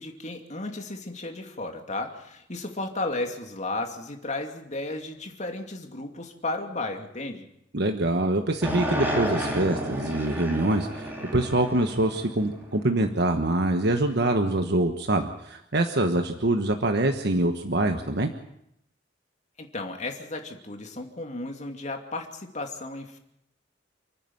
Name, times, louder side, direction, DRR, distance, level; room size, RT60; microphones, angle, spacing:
voice 1, 0.0-7.5 19.6-23.2, left 2 dB, 40° left, 4 dB, 2.6 m, -34 dB
voice 2, 7.7-18.3, right 2 dB, 65° right, 5 dB, 1.3 m, -25 dB
sound 1, 8.6-13.0, equal, 10° right, 3.8 m, -31 dB
29.5 x 9.8 x 9.3 m, 0.78 s
head